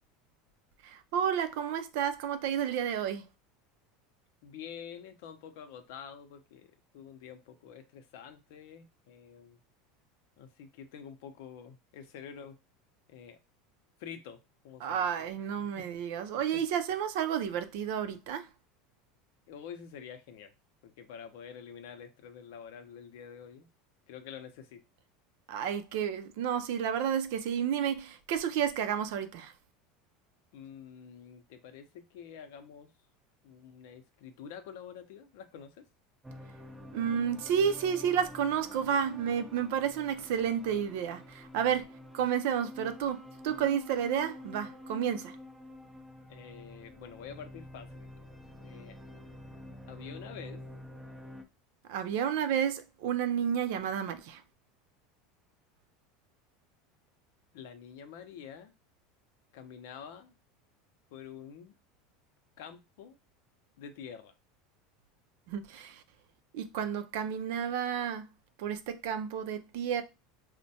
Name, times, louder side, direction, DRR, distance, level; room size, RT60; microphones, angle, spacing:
voice 1, 0.8-3.2 14.8-18.5 25.5-29.5 36.9-45.4 51.9-54.4 65.5-66.0 66.5-68.3 68.6-70.0, right 8 dB, 70° right, 0.5 m, -31 dB
voice 2, 4.4-9.6 10.4-12.6 13.1-13.4 14.0-14.4 14.6-15.3 15.8-15.9 16.5-16.6 19.5-20.5 20.8-23.7 24.1-24.8 30.5-32.9 33.4-35.9 46.3-48.1 48.6-49.0 49.9-50.6 57.5-58.7 59.5-60.4 61.1-61.7 62.6-63.2 63.8-64.3, left 7 dB, 75° left, 0.6 m, -47 dB
sound 1, 36.2-51.4, left 1 dB, 5° right, 0.5 m, -48 dB
4.3 x 2.1 x 2.8 m
supercardioid pair, 125°, 0 cm